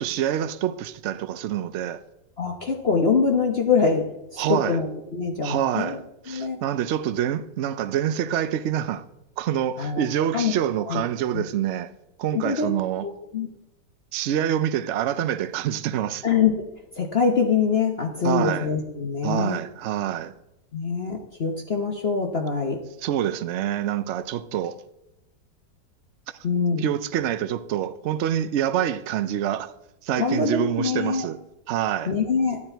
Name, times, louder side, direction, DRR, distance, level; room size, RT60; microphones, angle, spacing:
voice 1, 0.0-2.0 4.4-4.8 5.4-6.0 6.3-9.0 9.4-11.9 12.2-13.1 14.1-16.2 18.2-18.7 19.2-20.3 23.0-24.8 26.8-29.7 30.0-31.4 31.7-32.1, right 10 dB, 90° right, 0.6 m, -26 dB
voice 2, 2.4-4.1 4.3-6.0 6.3-6.6 9.8-10.1 10.3-10.5 10.9-11.0 11.3-11.4 12.3-12.7 13.0-13.5 16.2-16.5 17.0-19.6 20.7-22.8 26.4-26.9 30.2-31.3 32.1-32.6, left 5 dB, 40° left, 1.1 m, -24 dB
12.5 x 9.7 x 4.5 m
omnidirectional pair, 1.9 m